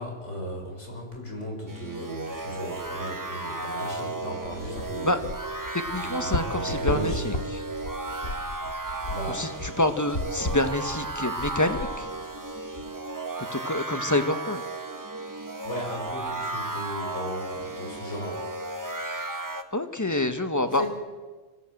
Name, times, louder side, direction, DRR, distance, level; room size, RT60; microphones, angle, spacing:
voice 1, 0.0-5.2 6.0-7.4 9.1-9.4 15.6-18.4 20.7-21.0, equal, 75° left, 1 dB, 6.4 m, -35 dB
sound 1, 1.7-19.6, right 2 dB, 15° right, 1.1 m, -34 dB
sound 2, 4.4-12.9, left 1 dB, 60° left, 2.5 m, -35 dB
voice 2, 5.9-7.6 9.3-12.1 13.5-14.6 19.7-20.8, left 1 dB, 15° left, 8 dB, 1.4 m, -27 dB
25.5 x 16.0 x 7.9 m, 1.3 s
omnidirectional pair, 1.3 m